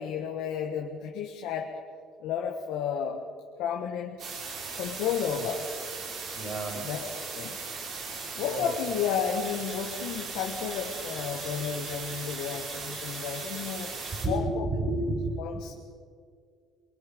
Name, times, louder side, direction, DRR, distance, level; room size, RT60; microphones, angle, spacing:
voice 1, 0.0-1.7 2.2-3.2 3.6-4.2 4.7-5.6 6.7-7.6 8.4-13.9 14.3-14.6 15.4-15.7, left 8 dB, 80° left, 2 dB, 1.7 m, -32 dB
sound 1, 4.2-14.3, right 4 dB, 55° right, 5.0 m, -38 dB
voice 2, 6.3-6.9 8.4-8.7 14.1-15.7, right 2 dB, 40° right, 3 dB, 5.7 m, -31 dB
sound 2, 9.1-14.4, left 2 dB, ahead, 4.8 m, -49 dB
23.5 x 23.0 x 5.4 m, 2.1 s
cardioid pair, 110°, 0 cm